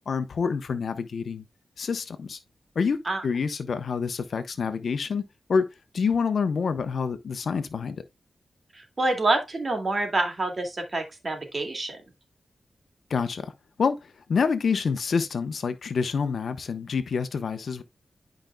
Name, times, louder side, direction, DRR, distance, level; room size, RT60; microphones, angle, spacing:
voice 1, 0.1-1.4 1.8-2.4 2.7-5.7 5.9-8.0 13.1-13.5 13.8-14.0 14.3-17.8, left 5 dB, 70° left, 0.9 m, -27 dB
voice 2, 8.7-12.0, right 2 dB, 40° right, 2.3 m, -27 dB
11.5 x 5.2 x 2.3 m
wide cardioid pair, 95°, 0 cm